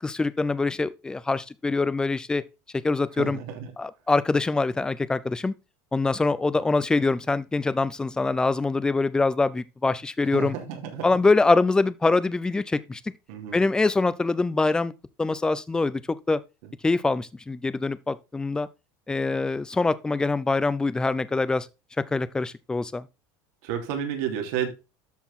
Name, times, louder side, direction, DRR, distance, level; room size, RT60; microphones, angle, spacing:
voice 1, 0.0-2.4 2.8-3.4 3.8-5.5 5.9-10.6 11.0-13.0 13.5-14.9 15.2-16.4 16.8-18.7 19.1-21.7 22.1-23.1, left 3 dB, 10° left, 0.5 m, -24 dB
voice 2, 3.2-3.7 10.3-11.1 13.3-13.6 23.6-24.7, right 8 dB, 75° right, 3.0 m, -31 dB
13.0 x 4.5 x 3.7 m
cardioid pair, 155°, 9 cm